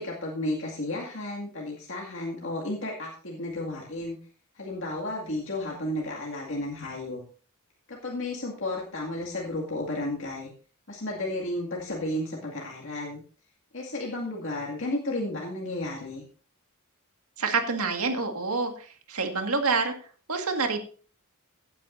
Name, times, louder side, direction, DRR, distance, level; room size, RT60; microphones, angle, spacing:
voice 1, 0.0-4.2 4.5-7.2 7.9-10.5 10.9-13.2 13.7-16.2, left 1 dB, 60° left, -3 dB, 2.2 m, -33 dB
voice 2, 17.4-19.9 20.3-20.8, right 4 dB, 85° right, 5 dB, 1.9 m, -27 dB
16.5 x 9.3 x 2.6 m, 0.40 s
head